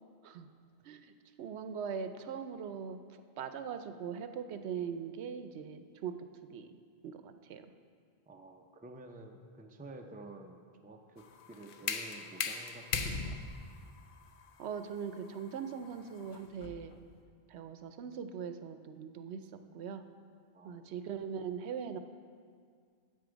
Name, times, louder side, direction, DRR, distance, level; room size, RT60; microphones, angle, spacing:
voice 1, 1.4-6.7 7.0-7.7 14.6-17.0 17.5-20.0 20.6-22.0, right 7 dB, 80° right, 9 dB, 0.9 m, -41 dB
voice 2, 8.3-13.5 20.5-21.0, right 2 dB, 10° right, 3 dB, 0.4 m, -51 dB
sound 1, 11.2-17.0, left 5 dB, 60° left, 0.8 m, -39 dB
9.4 x 8.1 x 5.0 m, 2.1 s
omnidirectional pair, 1.1 m